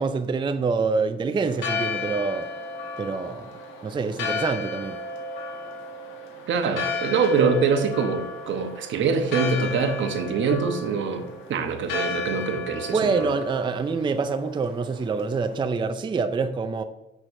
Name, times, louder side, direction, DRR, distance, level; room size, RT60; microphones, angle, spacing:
voice 1, 0.0-2.5 3.0-3.5 3.8-5.0 12.9-16.8, right 4 dB, 25° right, 0.4 m, -26 dB
Church bell, 1.4-15.5, left 4 dB, 75° left, 1.3 m, -34 dB
voice 2, 6.5-13.4, right 5 dB, 70° right, 0.9 m, -24 dB
6.3 x 5.9 x 2.6 m
cardioid pair, 90°, 20 cm